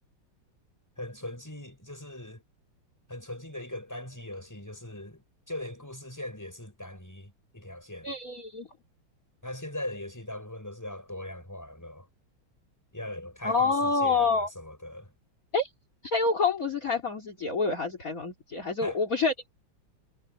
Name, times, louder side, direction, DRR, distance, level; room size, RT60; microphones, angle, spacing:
voice 1, 1.0-2.4 3.1-8.1 9.4-12.1 12.9-15.1 18.8-19.0, left 1 dB, 10° left, 6.1 m, -40 dB
voice 2, 8.0-8.7 13.4-14.5 15.5-15.7 16.0-19.3, left 4 dB, 40° left, 3.2 m, -27 dB
omnidirectional pair, 2.3 m